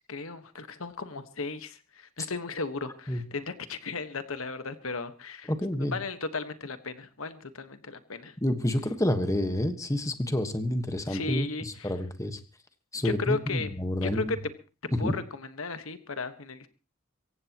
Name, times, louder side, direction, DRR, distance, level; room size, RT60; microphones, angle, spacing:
voice 1, 0.1-5.5 5.9-8.3 11.1-11.9 12.9-13.7 14.0-14.4 15.0-16.7, left 4 dB, 80° left, 10 dB, 1.4 m, -35 dB
voice 2, 5.5-6.0 8.4-12.4 12.9-14.3 14.9-15.1, left 1 dB, 15° left, 8 dB, 1.3 m, -29 dB
24.5 x 15.5 x 3.0 m, 0.34 s
head